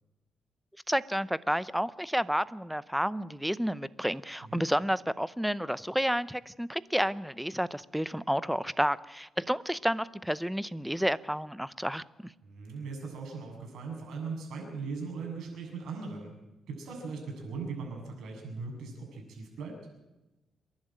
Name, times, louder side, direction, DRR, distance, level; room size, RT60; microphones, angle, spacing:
voice 1, 0.9-12.3, equal, ahead, 17 dB, 0.6 m, -30 dB
voice 2, 12.4-16.3 16.7-19.8, right 4 dB, 80° right, 1 dB, 7.7 m, -39 dB
27.0 x 11.5 x 9.1 m, 1.0 s
cardioid pair, 120°, 0 cm